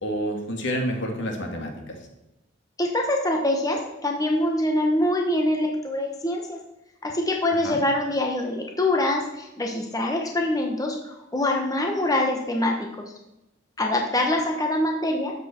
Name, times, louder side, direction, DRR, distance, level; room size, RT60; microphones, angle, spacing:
voice 1, 0.0-2.0 7.6-7.8, equal, 65° left, 2 dB, 2.2 m, -29 dB
voice 2, 2.8-6.6 7.0-13.1 13.8-15.3, left 1 dB, 20° left, 1 dB, 1.1 m, -24 dB
12.5 x 8.2 x 4.4 m, 0.93 s
head